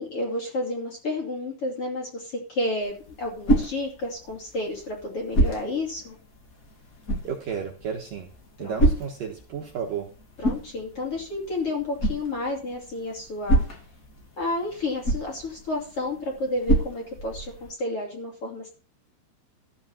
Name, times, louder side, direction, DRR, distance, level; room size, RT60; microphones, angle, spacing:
voice 1, 0.0-6.2 8.6-8.8 10.4-13.6 14.4-18.7, left 2 dB, 35° left, -1 dB, 2.9 m, -31 dB
sound 1, 2.8-17.7, right 1 dB, 60° left, 0.8 m, -29 dB
voice 2, 7.2-8.3 8.6-10.1, right 7 dB, 60° right, 1 dB, 2.5 m, -32 dB
13.5 x 5.4 x 7.2 m, 0.38 s
omnidirectional pair, 5.3 m